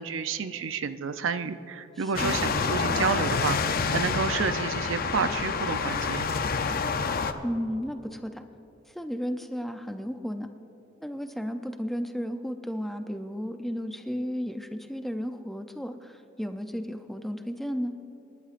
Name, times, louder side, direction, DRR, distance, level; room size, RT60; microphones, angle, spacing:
voice 1, 0.0-6.3, right 5 dB, 75° right, 11 dB, 0.5 m, -30 dB
voice 2, 2.0-2.4 7.4-8.4 8.9-10.5 11.0-17.9, equal, ahead, 7 dB, 0.5 m, -33 dB
sound 1, 2.2-7.3, left 5 dB, 50° left, 0.6 m, -28 dB
27.5 x 11.0 x 2.5 m, 3.0 s
head